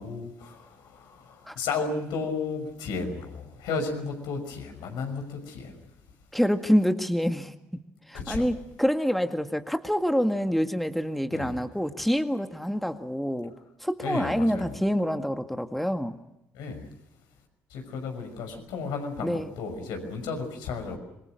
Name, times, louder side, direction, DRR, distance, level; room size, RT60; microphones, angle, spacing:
voice 1, 0.0-5.7 8.1-8.5 11.3-11.6 14.0-14.7 16.5-16.9 17.7-21.0, left 4 dB, 70° left, 4 dB, 6.1 m, -33 dB
voice 2, 6.3-7.5 8.1-13.5 13.8-16.2 19.2-19.5, equal, ahead, 7 dB, 1.9 m, -26 dB
27.5 x 23.5 x 6.5 m, 0.89 s
hypercardioid pair, 50°, 8 cm